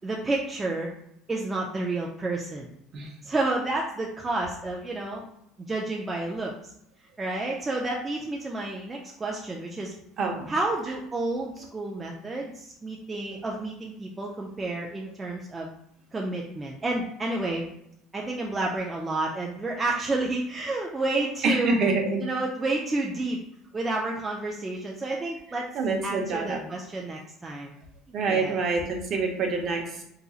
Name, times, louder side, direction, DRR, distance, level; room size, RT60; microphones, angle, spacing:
voice 1, 0.0-0.9 1.3-2.7 3.2-5.3 5.7-6.7 7.2-9.9 10.5-15.7 16.1-17.6 18.1-21.9 22.2-23.4 23.7-25.7 26.0-27.7 28.3-28.6, right 2 dB, 15° right, -1 dB, 0.3 m, -30 dB
voice 2, 21.4-22.2 25.7-26.6 28.1-30.0, right 4 dB, 40° right, 1 dB, 0.7 m, -26 dB
3.7 x 2.8 x 2.3 m, 0.76 s
cardioid pair, 150°, 0 cm